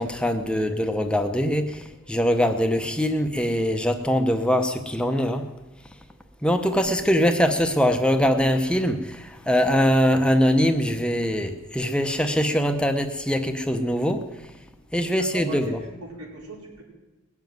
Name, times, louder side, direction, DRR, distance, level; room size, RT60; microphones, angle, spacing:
voice 1, 0.0-5.4 6.4-14.2 14.9-15.8, equal, 5° left, 6 dB, 0.7 m, -22 dB
voice 2, 15.2-16.8, right 2 dB, 85° right, -1 dB, 5.0 m, -39 dB
19.5 x 7.2 x 9.3 m, 1.1 s
head